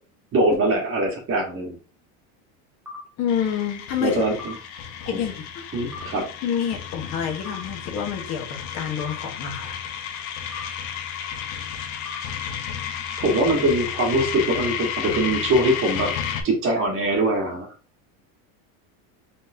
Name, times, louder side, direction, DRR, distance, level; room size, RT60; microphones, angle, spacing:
voice 1, 0.3-1.8 4.0-4.5 5.1-5.2 5.7-6.3 13.2-16.1 16.4-17.7, right 1 dB, 30° right, 1 dB, 1.3 m, -22 dB
sound 1, 2.9-3.0 4.4-4.6 5.9-6.1 7.5-7.6 9.0-9.2 10.5-10.7 12.0-12.2, left 4 dB, 5° right, 1.0 m, -38 dB
voice 2, 3.2-4.2 5.0-5.4 6.4-9.8, left 8 dB, 40° left, 2 dB, 1.1 m, -27 dB
sound 2, 3.3-16.4, left 8 dB, 60° left, 1.0 m, -32 dB
4.2 x 3.5 x 2.6 m, 0.36 s
cardioid pair, 155°, 42 cm